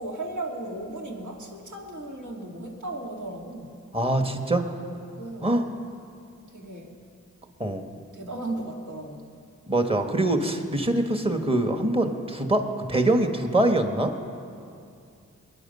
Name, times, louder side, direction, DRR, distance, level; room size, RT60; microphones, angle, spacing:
voice 1, 0.0-3.7 4.8-5.5 6.5-6.9 8.1-9.3, right 2 dB, 65° right, -1 dB, 2.5 m, -36 dB
voice 2, 3.9-4.6 5.4-5.6 7.6-7.8 9.7-14.1, right 1 dB, 20° right, 5 dB, 1.5 m, -24 dB
21.5 x 10.0 x 5.5 m, 2.5 s
cardioid pair, 55°, 31 cm